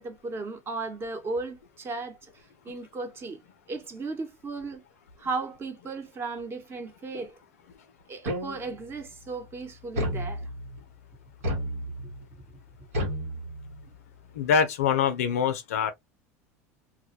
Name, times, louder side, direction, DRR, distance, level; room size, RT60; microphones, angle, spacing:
voice 1, 0.0-2.2 2.6-3.4 3.7-4.8 5.2-7.3 8.1-10.5, right 3 dB, 30° right, 0.9 m, -35 dB
sound 1, 8.3-8.9 10.0-10.8 11.4-12.2 12.9-14.0, equal, 90° right, 1.0 m, -32 dB
voice 2, 14.4-15.9, left 7 dB, 90° left, 0.4 m, -24 dB
2.1 x 2.1 x 2.7 m
hypercardioid pair, 95°, 8 cm